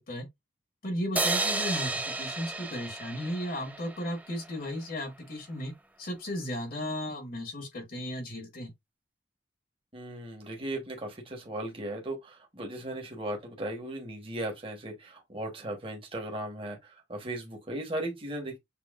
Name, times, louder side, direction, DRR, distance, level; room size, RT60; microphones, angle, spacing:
voice 1, 0.8-5.7 6.0-8.7, equal, 50° left, 1.4 m, -35 dB
sound 1, 1.2-4.5, right 2 dB, 10° right, 0.5 m, -32 dB
voice 2, 9.9-18.6, right 1 dB, 30° right, 1.2 m, -37 dB
6.9 x 2.8 x 2.4 m
head